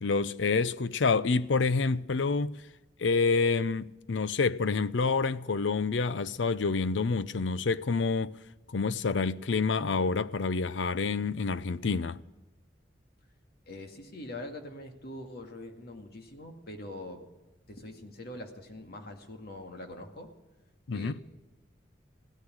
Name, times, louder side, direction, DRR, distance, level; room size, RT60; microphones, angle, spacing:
voice 1, 0.0-2.6 3.0-8.4 8.7-12.2 20.9-21.1, left 4 dB, 75° left, 0.6 m, -28 dB
voice 2, 13.7-17.2 17.7-20.3 20.9-21.2, left 1 dB, 60° left, 2.1 m, -43 dB
16.5 x 13.0 x 6.3 m
head